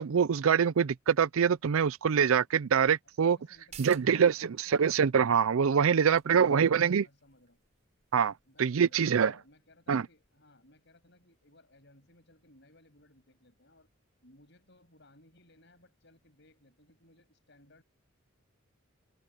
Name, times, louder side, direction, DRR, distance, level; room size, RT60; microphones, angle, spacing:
voice 1, 0.0-3.4 3.8-7.0 8.1-8.3 8.6-9.3 9.9-10.0, right 7 dB, 85° right, 0.5 m, -25 dB
voice 2, 3.1-5.0 6.0-7.6 8.5-13.9 14.2-17.8, left 1 dB, 55° left, 7.9 m, -62 dB
sound 1, 3.5-10.7 11.0-11.1, right 8 dB, 35° right, 4.9 m, -58 dB
head